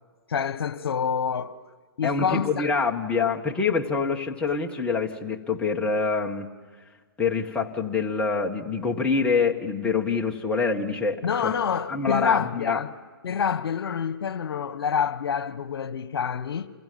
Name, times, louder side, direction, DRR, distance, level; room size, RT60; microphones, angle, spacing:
voice 1, 0.3-1.6 2.0-2.7 11.2-12.9 13.2-16.7, left 7 dB, 70° left, 1.3 m, -27 dB
voice 2, 2.0-6.5 7.2-11.5 11.9-12.8, left 4 dB, 10° left, 1.6 m, -26 dB
28.0 x 22.0 x 9.5 m
hypercardioid pair, 145°, 13 cm